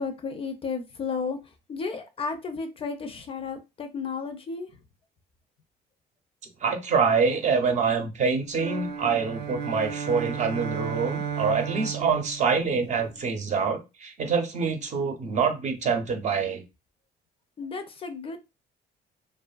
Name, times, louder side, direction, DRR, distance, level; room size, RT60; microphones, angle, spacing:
voice 1, 0.0-1.4 1.7-4.7 17.6-18.4, left 5 dB, 35° left, 0.4 m, -33 dB
voice 2, 6.6-16.6, right 5 dB, 45° right, 0.7 m, -25 dB
sound 1, 8.5-13.2, right 7 dB, 85° right, 0.4 m, -34 dB
2.5 x 2.4 x 2.3 m
cardioid pair, 110°, 17 cm